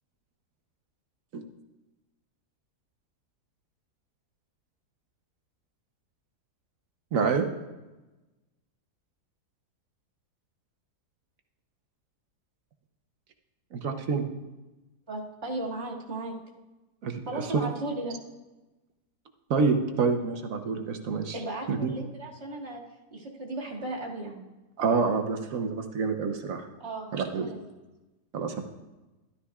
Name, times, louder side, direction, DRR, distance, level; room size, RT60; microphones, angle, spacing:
voice 1, 7.1-7.4 13.7-14.2 17.0-17.6 19.5-21.4 21.7-21.9 24.8-26.7 27.1-27.5 28.3-28.6, right 5 dB, 60° right, 5 dB, 1.2 m, -27 dB
voice 2, 15.1-16.3 17.3-18.2 21.3-22.8 23.1-24.4 26.8-27.7, right 2 dB, 40° right, -4 dB, 2.3 m, -36 dB
12.5 x 12.5 x 2.4 m, 1.1 s
omnidirectional pair, 1.7 m